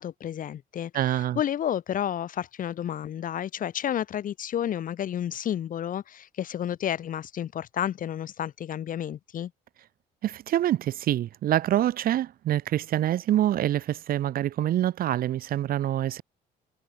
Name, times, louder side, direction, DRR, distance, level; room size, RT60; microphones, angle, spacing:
voice 1, 0.0-0.9 1.4-9.5, left 10 dB, 55° left, 2.4 m, -31 dB
voice 2, 0.9-1.4 10.2-16.2, right 12 dB, 60° right, 1.4 m, -26 dB
cardioid pair, 110°, 17 cm